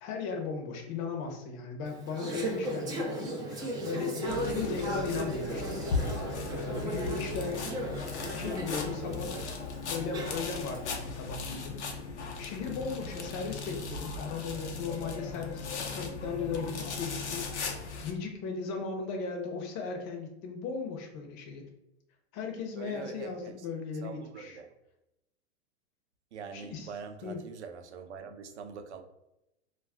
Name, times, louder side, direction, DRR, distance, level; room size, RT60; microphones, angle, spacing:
voice 1, 0.0-5.9 6.5-7.6 8.3-9.3 9.9-12.0 12.4-15.7 15.9-17.7 18.0-21.7 22.3-24.6 26.5-26.9 27.2-27.4, left 5 dB, 40° left, 0.7 m, -37 dB
Conversation / Chatter, 1.9-10.8, right 1 dB, 10° right, 0.4 m, -36 dB
sound 1, 4.3-18.1, left 4 dB, 90° left, 0.7 m, -37 dB
voice 2, 22.8-23.5 24.0-24.7 26.3-29.0, right 6 dB, 85° right, 0.5 m, -43 dB
2.3 x 2.2 x 3.5 m
hypercardioid pair, 120°, 33 cm